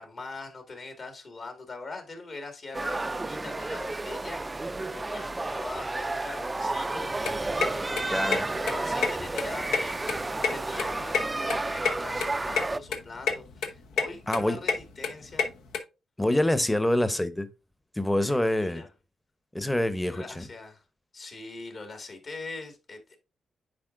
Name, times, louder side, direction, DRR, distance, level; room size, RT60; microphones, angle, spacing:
voice 1, 0.0-7.4 7.7-10.1 10.5-15.5 18.3-18.9 20.1-20.8 21.1-23.2, left 3 dB, 55° left, 1.9 m, -42 dB
sound 1, 2.7-12.8, right 2 dB, 25° right, 0.3 m, -31 dB
sound 2, 7.0-15.8, left 5 dB, 90° left, 0.8 m, -30 dB
voice 2, 8.1-8.4 14.3-14.6 16.2-17.5 18.0-18.8 19.5-20.4, left 1 dB, 10° left, 0.8 m, -26 dB
9.6 x 4.2 x 2.5 m
cardioid pair, 65°, 0 cm